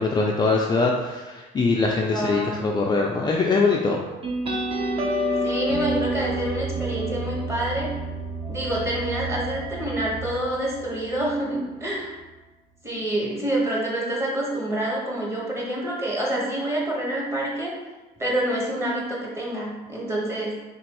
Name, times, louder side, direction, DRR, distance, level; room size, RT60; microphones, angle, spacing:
voice 1, 0.0-4.0, left 3 dB, 25° left, -1 dB, 0.3 m, -22 dB
voice 2, 2.1-2.7 5.4-7.9 8.5-12.1 12.8-17.7 18.2-20.6, right 1 dB, 15° right, -4 dB, 1.2 m, -27 dB
sound 1, 4.2-11.4, right 1 dB, 30° right, 0.7 m, -29 dB
3.7 x 3.0 x 2.9 m, 1.2 s
cardioid pair, 110°, 17 cm